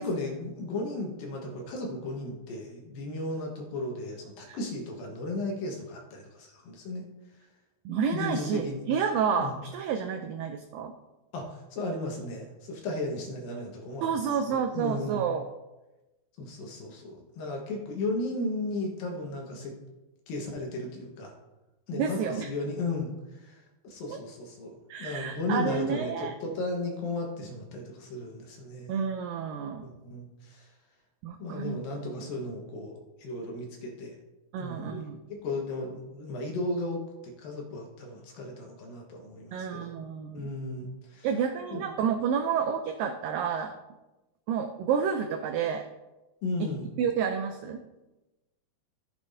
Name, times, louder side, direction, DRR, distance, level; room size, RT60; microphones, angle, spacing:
voice 1, 0.0-7.0 8.1-8.8 9.4-9.6 11.3-14.2 14.5-15.2 16.4-19.8 20.3-21.3 21.9-28.9 29.8-30.7 31.4-32.9 33.2-34.2 34.6-35.0 35.3-39.9 40.3-41.3 41.7-41.8 46.4-46.9, left 2 dB, 70° left, 0 dB, 2.8 m, -35 dB
voice 2, 7.9-10.9 14.0-15.5 21.9-22.5 24.1-24.2 24.9-26.3 28.9-29.9 31.2-31.8 34.5-35.2 39.5-40.4 41.2-43.7 44.5-45.9 46.6-46.7 47.0-47.8, right 7 dB, 90° right, 6 dB, 1.9 m, -30 dB
14.0 x 8.1 x 2.7 m, 1.0 s
omnidirectional pair, 4.7 m